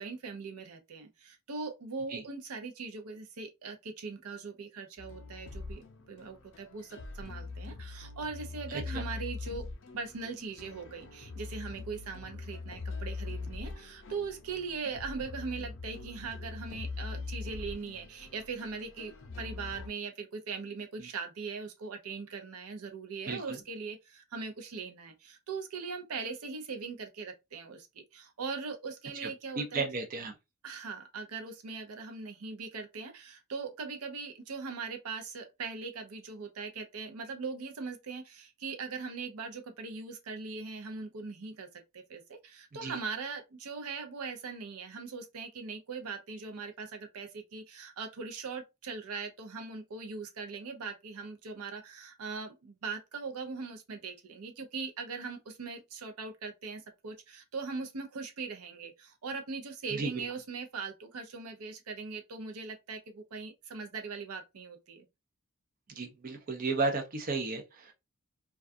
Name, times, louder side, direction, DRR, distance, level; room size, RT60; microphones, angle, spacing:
voice 1, 0.0-29.9 30.6-41.7 41.9-65.1, right 4 dB, 90° right, 0.6 m, -40 dB
sound 1, 5.0-19.9, left 3 dB, 60° left, 0.5 m, -42 dB
voice 2, 29.6-30.3 42.8-42.9 59.9-60.3 65.9-67.9, right 3 dB, 40° right, 0.5 m, -33 dB
2.3 x 2.3 x 2.5 m
head